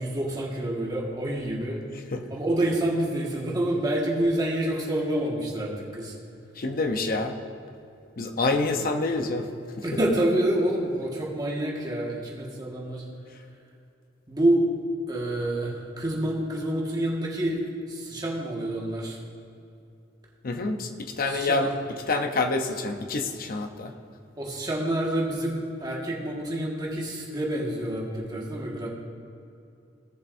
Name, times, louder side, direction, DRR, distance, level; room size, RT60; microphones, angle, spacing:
voice 1, 0.0-1.8 2.3-6.1 9.8-13.0 14.3-14.6 15.1-17.6 17.9-19.2 21.2-21.7 24.4-28.9, right 1 dB, 20° right, -3 dB, 1.7 m, -27 dB
voice 2, 6.6-7.3 8.2-9.5 20.4-21.7 22.1-23.9, left 3 dB, 50° left, 6 dB, 0.8 m, -27 dB
17.0 x 7.1 x 2.6 m, 2.6 s
head